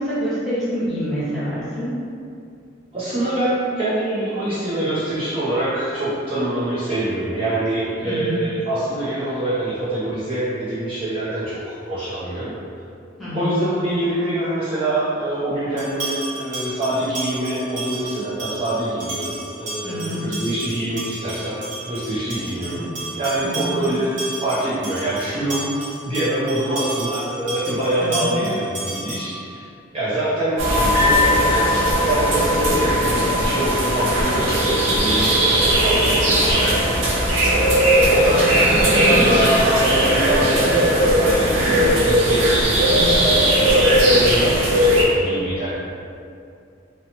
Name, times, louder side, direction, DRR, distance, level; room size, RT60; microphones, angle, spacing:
voice 1, 0.0-1.9 8.0-8.4 13.2-13.6 19.8-20.3 22.3-22.9 23.4-23.9 28.0-28.4 38.3-39.2 41.4-41.7 42.9-43.3, equal, ahead, -13 dB, 1.0 m, -27 dB
voice 2, 2.9-12.5 13.3-22.8 23.1-29.6 29.9-45.7, right 1 dB, 30° right, -11 dB, 0.4 m, -25 dB
sound 1, 15.8-29.4, right 2 dB, 70° right, 0.9 m, -32 dB
sound 2, 30.6-45.0, equal, 90° right, 0.5 m, -17 dB
2.7 x 2.0 x 2.8 m, 2.4 s
head